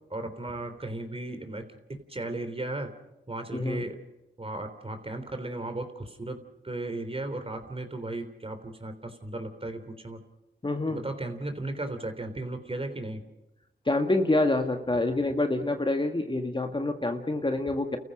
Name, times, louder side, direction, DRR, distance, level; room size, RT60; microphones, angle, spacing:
voice 1, 0.1-2.9 3.3-4.0 4.4-10.2 10.9-13.2, right 2 dB, 30° right, 7 dB, 3.5 m, -36 dB
voice 2, 3.5-3.8 10.6-11.0 13.9-18.0, left 2 dB, 25° left, 5 dB, 1.9 m, -27 dB
29.5 x 15.0 x 6.6 m, 0.94 s
supercardioid pair, 45°, 20 cm